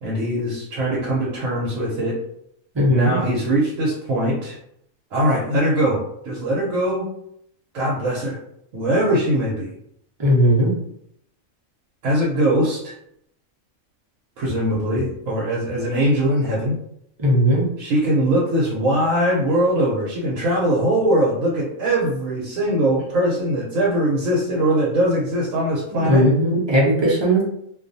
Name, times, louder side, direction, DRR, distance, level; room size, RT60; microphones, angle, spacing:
voice 1, 0.0-2.2 2.9-4.6 5.1-7.0 7.7-8.4 8.7-9.7 12.0-12.9 14.4-16.8 17.8-26.3, right 1 dB, 75° right, -5 dB, 1.0 m, -21 dB
voice 2, 2.7-3.2 10.2-10.7 17.2-17.7 25.9-27.4, equal, 30° right, -5 dB, 0.6 m, -17 dB
2.3 x 2.3 x 2.6 m, 0.73 s
omnidirectional pair, 1.4 m